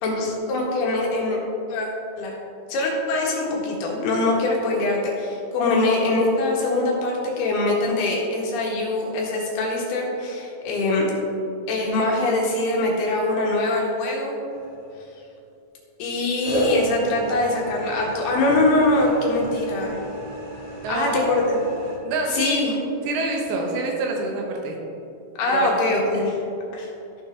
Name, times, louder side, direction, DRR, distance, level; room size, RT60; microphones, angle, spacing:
voice 1, 0.0-1.4 1.7-1.9 2.2-2.4 2.7-11.1 11.7-14.3 16.0-20.0 20.9-21.6 22.3-22.8 25.4-26.4 26.7-26.9, left 2 dB, 85° left, -2 dB, 3.6 m, -23 dB
sound 1, 14.5-15.2 16.4-22.0, right 1 dB, 35° right, 2.2 m, -31 dB
voice 2, 20.8-21.3 22.0-22.6 23.0-24.8 25.5-25.7 26.1-26.2, right 2 dB, 80° right, 0 dB, 2.9 m, -26 dB
14.5 x 6.0 x 3.6 m, 2.8 s
omnidirectional pair, 4.5 m